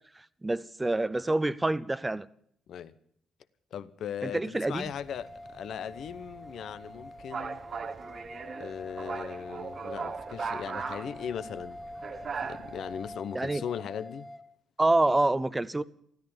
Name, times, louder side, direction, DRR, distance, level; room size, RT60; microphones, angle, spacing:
voice 1, 0.2-2.3 4.2-4.9 13.3-13.6 14.8-15.8, right 2 dB, 15° right, 0.7 m, -27 dB
voice 2, 3.7-7.6 8.6-11.8 12.2-14.3, left 8 dB, 70° left, 0.9 m, -38 dB
sound 1, 4.7-13.2, right 5 dB, 45° right, 1.1 m, -40 dB
sound 2, 5.1-14.4, left 1 dB, 15° left, 1.5 m, -46 dB
13.5 x 13.0 x 7.2 m
cardioid pair, 90°, 0 cm